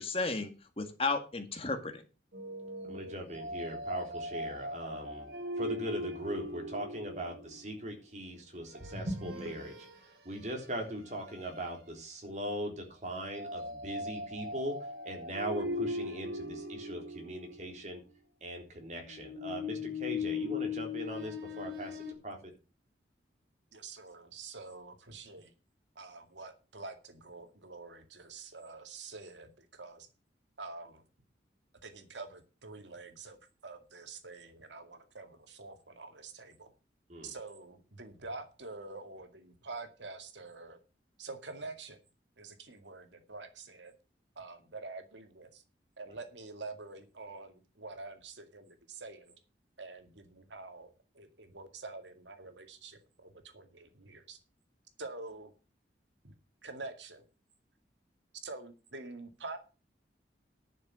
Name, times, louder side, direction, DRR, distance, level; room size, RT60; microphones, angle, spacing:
voice 1, 0.0-2.0, left 3 dB, 30° left, 7 dB, 1.9 m, -34 dB
sound 1, 2.3-7.6 8.7-10.0 10.5-10.6 11.2-11.7 13.3-17.8 19.0-22.1, left 2 dB, 70° right, 3.3 m, -39 dB
voice 2, 2.9-9.9 10.2-14.8 15.0-18.0 18.4-22.5 37.1-37.3, right 1 dB, 40° right, 2 dB, 3.8 m, -40 dB
voice 3, 23.7-25.5 26.0-30.1 30.6-31.0 31.8-33.4 33.6-36.7 37.2-40.8 41.2-42.0 42.4-43.9 44.4-45.6 46.0-49.4 49.8-54.4 55.0-55.5 56.2-56.3 56.6-57.3 58.4-59.6, right 3 dB, 90° right, 7 dB, 2.1 m, -46 dB
11.0 x 6.5 x 7.7 m, 0.32 s
head